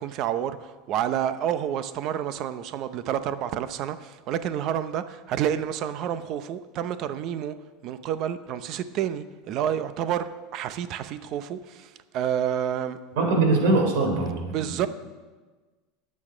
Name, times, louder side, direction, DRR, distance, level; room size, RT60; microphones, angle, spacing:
voice 1, 0.0-7.6 7.8-13.0 14.4-14.9, right 10 dB, 35° right, 0.6 m, -29 dB
voice 2, 13.2-14.9, right 3 dB, 70° right, 3.5 m, -23 dB
19.5 x 8.6 x 5.0 m
supercardioid pair, 175°, 0 cm